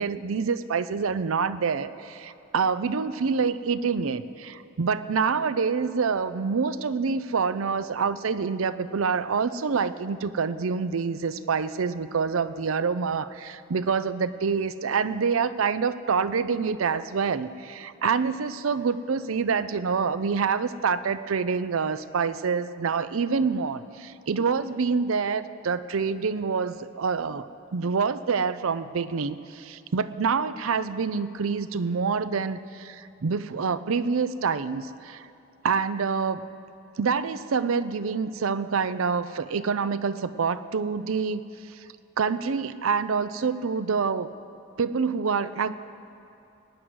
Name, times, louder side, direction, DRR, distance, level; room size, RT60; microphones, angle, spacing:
voice 1, 0.0-27.5 27.7-35.3 35.6-36.5 37.0-41.4 41.7-41.9 42.2-44.3 44.8-45.8, right 5 dB, 85° right, 14 dB, 0.5 m, -26 dB
19.5 x 9.4 x 6.3 m, 2.7 s
head